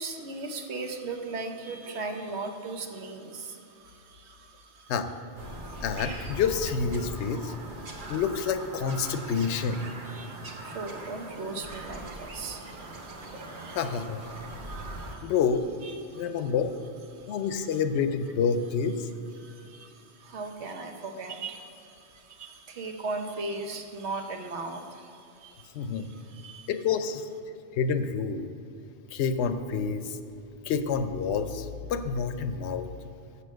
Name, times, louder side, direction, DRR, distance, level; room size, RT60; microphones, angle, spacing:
voice 1, 0.0-4.9 5.5-5.8 7.8-8.2 9.1-9.2 9.8-13.9 14.3-15.3 15.8-16.5 17.1-17.8 19.3-26.7, right 3 dB, 75° right, 4 dB, 1.1 m, -39 dB
Bird vocalization bird call bird song, 5.4-15.2, right 2 dB, 50° right, 1.1 m, -40 dB
voice 2, 5.8-7.5 8.1-9.8 13.7-14.2 15.2-15.7 16.1-16.7 17.3-19.1 25.7-26.1 26.7-27.3 27.7-28.5 29.1-30.2 30.6-32.8, left 6 dB, 80° left, 9 dB, 0.8 m, -28 dB
6.9 x 6.8 x 6.3 m, 2.6 s
omnidirectional pair, 1.2 m